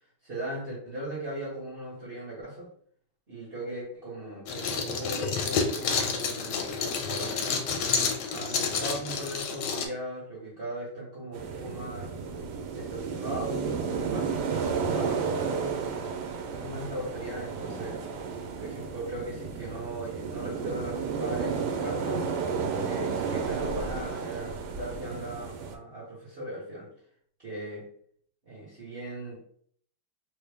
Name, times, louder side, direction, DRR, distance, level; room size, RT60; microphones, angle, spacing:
voice 1, 0.2-2.7 3.3-7.8 8.3-12.2 12.8-16.1 16.6-18.0 18.6-22.3 22.8-26.9 27.4-27.9 28.5-29.4, right 1 dB, 40° right, -7 dB, 0.9 m, -38 dB
sound 1, 4.5-9.9, left 5 dB, 75° left, 1.1 m, -29 dB
sound 2, 11.3-25.8, right 5 dB, 75° right, 1.0 m, -32 dB
3.3 x 2.3 x 3.3 m, 0.62 s
omnidirectional pair, 2.1 m